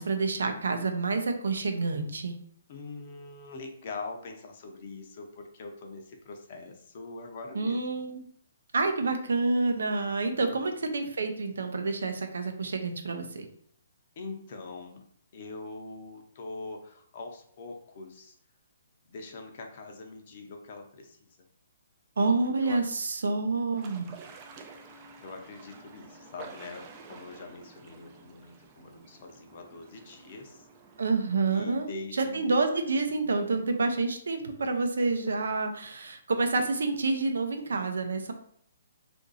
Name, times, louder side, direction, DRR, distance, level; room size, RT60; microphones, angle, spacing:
voice 1, 0.0-2.4 7.5-8.2 8.7-13.5 22.2-24.1 31.0-38.3, right 3 dB, 85° right, 6 dB, 0.6 m, -28 dB
voice 2, 2.7-8.0 9.8-10.5 14.2-15.0 15.3-18.4 19.1-21.3 22.6-22.8 23.4-23.6 24.8-30.7 31.5-32.5, left 3 dB, 35° left, 3 dB, 0.6 m, -43 dB
sound 1, 23.7-31.5, right 4 dB, 20° right, 0.3 m, -50 dB
2.8 x 2.6 x 3.9 m, 0.62 s
hypercardioid pair, 170°, 0 cm